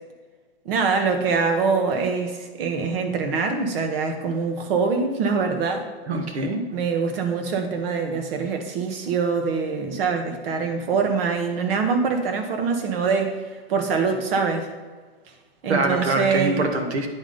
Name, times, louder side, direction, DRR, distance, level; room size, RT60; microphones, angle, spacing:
voice 1, 0.6-5.9 6.7-14.7 15.6-16.6, right 5 dB, 60° right, 5 dB, 1.4 m, -24 dB
voice 2, 6.1-6.7 15.7-17.1, right 2 dB, 90° right, 5 dB, 1.5 m, -24 dB
9.6 x 4.0 x 5.2 m, 1.4 s
hypercardioid pair, 145°, 32 cm